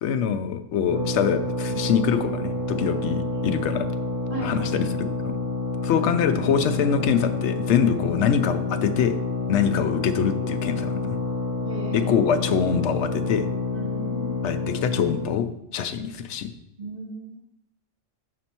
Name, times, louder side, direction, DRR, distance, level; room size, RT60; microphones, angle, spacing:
voice 1, 0.0-3.9 4.4-5.3 5.8-9.1 9.5-10.9 11.9-13.5 14.4-16.5, left 7 dB, 75° left, 10 dB, 0.9 m, -24 dB
sound 1, 0.9-15.4, left 3 dB, 75° right, 1.9 m, -28 dB
voice 2, 4.3-4.6 6.0-6.1 11.6-12.1 13.7-14.4 16.8-17.3, right 1 dB, 45° right, -6 dB, 2.4 m, -36 dB
11.0 x 4.3 x 2.9 m, 0.82 s
omnidirectional pair, 1.2 m